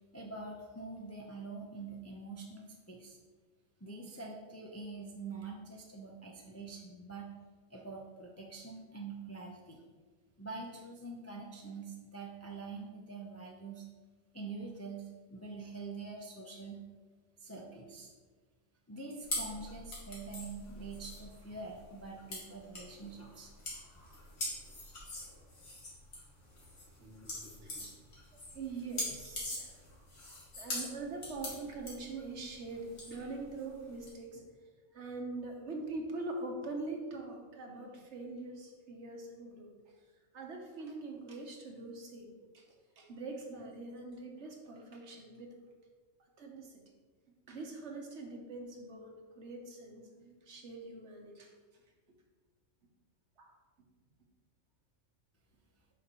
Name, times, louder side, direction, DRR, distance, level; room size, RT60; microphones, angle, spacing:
voice 1, 0.1-3.2 3.8-7.3 7.7-9.8 10.4-13.9 14.3-16.8 17.4-18.1 18.9-23.5, right 3 dB, 20° left, -1 dB, 0.5 m, -45 dB
sound 1, 19.2-34.1, left 1 dB, 85° left, 2.2 m, -43 dB
voice 2, 27.0-27.9 28.5-29.8 30.6-34.4 34.9-39.9 40.3-42.7 43.0-45.6 46.4-46.8 47.3-51.8 53.4-53.5, right 3 dB, 60° right, 1 dB, 1.3 m, -43 dB
8.1 x 5.7 x 3.0 m, 1.4 s
omnidirectional pair, 1.3 m